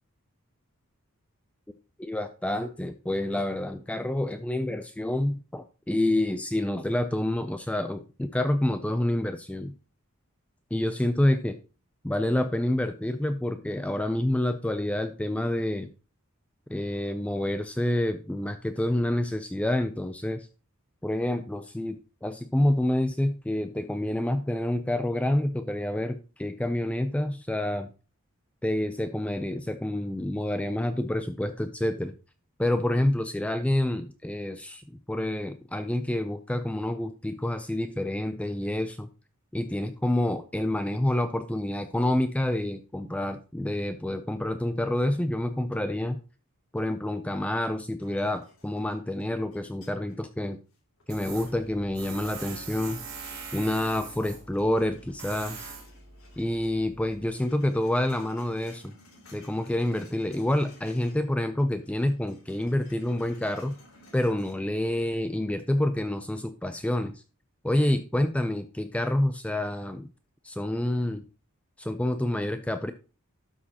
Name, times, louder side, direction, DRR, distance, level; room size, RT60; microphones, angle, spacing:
voice 1, 2.0-9.7 10.7-11.6 12.0-15.9 16.7-20.5 21.0-27.9 28.6-32.1 32.6-39.1 39.5-46.2 46.7-50.6 51.1-53.0 53.5-55.7 56.4-59.0 59.3-63.8 64.1-67.2 67.6-70.1 70.4-71.2 71.8-72.9, left 1 dB, 5° left, 9 dB, 0.4 m, -28 dB
sound 1, 48.0-50.3 50.7-53.9 54.2-56.7 57.0-61.3 61.6-64.5, left 2 dB, 70° left, 2.9 m, -56 dB
Tools, 51.1-57.2, right 5 dB, 70° right, 3.3 m, -43 dB
12.5 x 6.3 x 2.8 m, 0.34 s
head